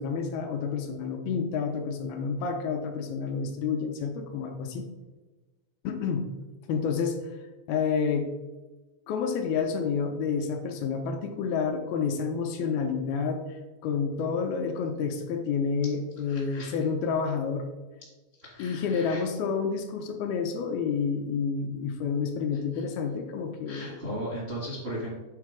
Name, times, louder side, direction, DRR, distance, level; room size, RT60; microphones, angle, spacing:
voice 1, 0.0-4.9 5.8-6.3 6.7-7.3 7.7-8.3 9.1-17.7 18.6-24.0, left 5 dB, 80° left, 4 dB, 2.3 m, -29 dB
voice 2, 16.3-16.7 18.4-19.2 23.7-25.1, equal, 45° right, -7 dB, 0.8 m, -37 dB
7.4 x 3.9 x 4.8 m, 1.2 s
omnidirectional pair, 4.6 m